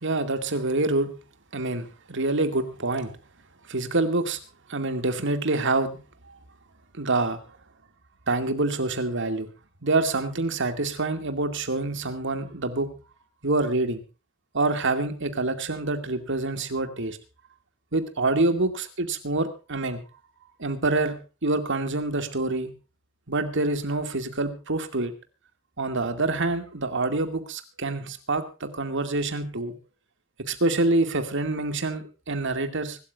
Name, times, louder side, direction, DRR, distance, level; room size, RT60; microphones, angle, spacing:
voice 1, 0.0-1.2 1.5-3.2 3.7-4.4 4.7-6.0 6.3-6.4 6.9-7.4 8.3-9.5 9.8-13.0 13.4-14.0 14.5-17.2 17.9-20.0 20.6-22.7 23.3-25.1 25.8-29.7 30.4-33.0, right 2 dB, 60° right, 9 dB, 2.3 m, -26 dB
25.0 x 13.0 x 2.5 m, 0.32 s
head